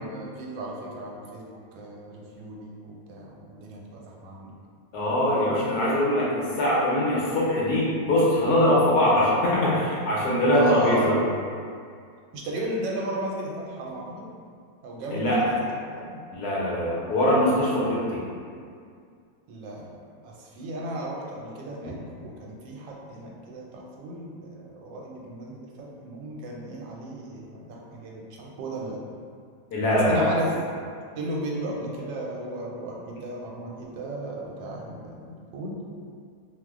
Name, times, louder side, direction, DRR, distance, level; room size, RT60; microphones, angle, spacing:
voice 1, 0.0-1.4 1.7-4.6 10.5-11.2 12.3-14.2 14.8-15.5 15.9-16.2 19.5-19.9 20.2-29.0 29.9-30.5 31.2-35.8, right 1 dB, 85° right, -2 dB, 1.3 m, -35 dB
voice 2, 4.9-11.2 15.1-15.5 16.3-18.2 29.7-30.3, left 1 dB, 70° left, -6 dB, 1.1 m, -22 dB
3.0 x 2.0 x 3.4 m, 2.2 s
omnidirectional pair, 1.9 m